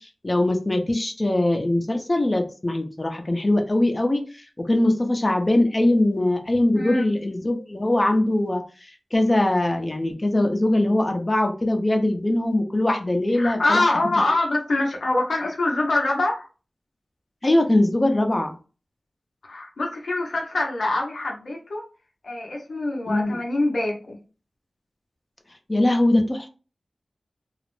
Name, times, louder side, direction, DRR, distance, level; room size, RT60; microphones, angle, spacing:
voice 1, 0.2-4.2 4.6-8.6 9.1-13.8 17.4-18.5 23.1-23.4 25.7-26.5, left 1 dB, 35° left, 4 dB, 0.6 m, -21 dB
voice 2, 6.7-7.1 13.3-16.5 19.4-21.8 22.2-24.2, left 2 dB, 90° left, -1 dB, 0.6 m, -24 dB
2.4 x 2.0 x 3.1 m, 0.34 s
cardioid pair, 45°, 0 cm